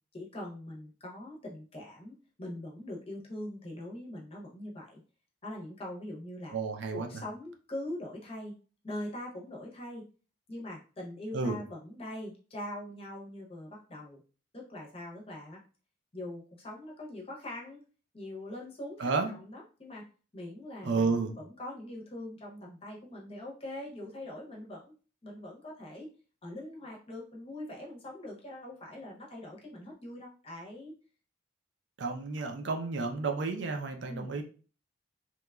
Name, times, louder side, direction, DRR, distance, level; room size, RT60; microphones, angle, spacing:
voice 1, 0.1-5.0 5.4-6.6 6.9-8.5 8.8-10.0 10.5-14.2 14.5-15.6 16.1-17.8 18.1-20.0 20.3-21.1 21.4-24.9 25.2-26.1 26.4-30.9 34.1-34.3, left 1 dB, 30° left, -2 dB, 0.7 m, -42 dB
voice 2, 6.5-7.2 11.3-11.6 19.0-19.3 20.8-21.3 32.0-34.4, right 4 dB, 70° right, 4 dB, 0.4 m, -31 dB
2.9 x 2.2 x 2.3 m, 0.38 s
head